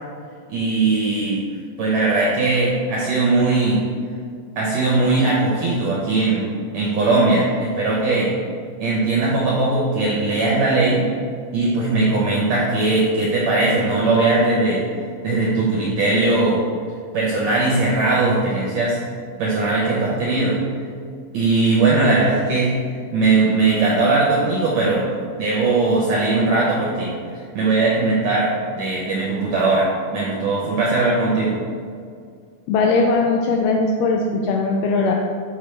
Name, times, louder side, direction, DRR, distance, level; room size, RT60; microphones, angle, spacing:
voice 1, 0.5-1.4 1.8-3.8 4.6-6.5 6.7-8.3 8.8-11.0 11.5-14.8 15.2-16.6 17.1-19.0 19.4-20.6 21.3-22.7 23.1-25.1 25.4-28.5 28.8-31.6, right 3 dB, 70° right, -5 dB, 1.6 m, -19 dB
voice 2, 32.7-35.1, left 3 dB, 85° left, 1 dB, 1.9 m, -19 dB
8.9 x 4.9 x 3.3 m, 2.2 s
omnidirectional pair, 4.3 m